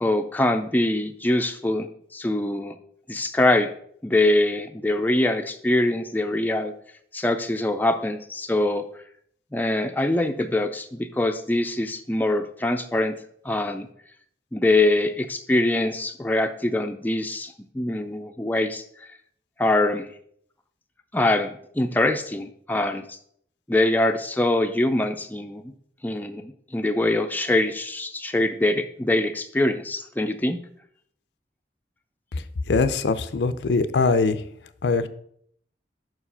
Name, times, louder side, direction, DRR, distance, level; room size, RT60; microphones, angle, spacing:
voice 1, 0.0-2.8 3.1-3.7 4.0-6.7 7.1-8.9 9.5-13.2 13.4-13.9 14.5-18.8 19.6-20.1 21.1-23.2 23.7-25.7 26.0-30.6, left 1 dB, 10° left, 6 dB, 0.4 m, -23 dB
voice 2, 32.7-34.4 34.8-35.1, left 4 dB, 80° left, 12 dB, 0.5 m, -22 dB
6.1 x 4.8 x 5.5 m, 0.66 s
head